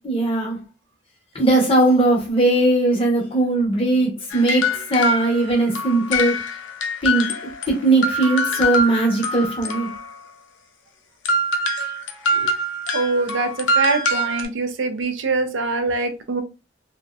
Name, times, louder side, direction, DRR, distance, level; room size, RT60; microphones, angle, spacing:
voice 1, 0.0-0.6 1.3-6.4 7.0-7.4 7.7-9.9, right 2 dB, 30° left, 0.7 m, -19 dB
sound 1, 4.3-7.8 8.0-10.2 11.2-14.4, left 1 dB, 80° left, 0.5 m, -24 dB
voice 2, 12.9-16.4, right 3 dB, 85° right, 0.5 m, -24 dB
2.6 x 2.0 x 2.3 m
head